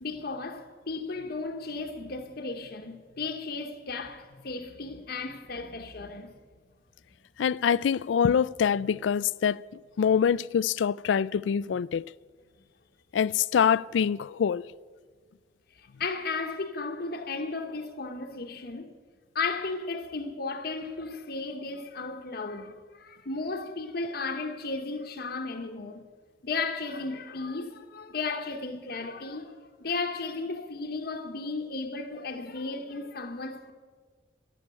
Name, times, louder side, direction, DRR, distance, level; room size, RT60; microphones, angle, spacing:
voice 1, 0.0-6.3 15.8-19.0 19.3-26.0 26.4-33.7, left 3 dB, 55° left, 0.9 m, -35 dB
voice 2, 7.4-9.6 10.0-12.0 13.1-14.6, left 7 dB, 85° left, 0.3 m, -25 dB
13.0 x 8.5 x 9.5 m
head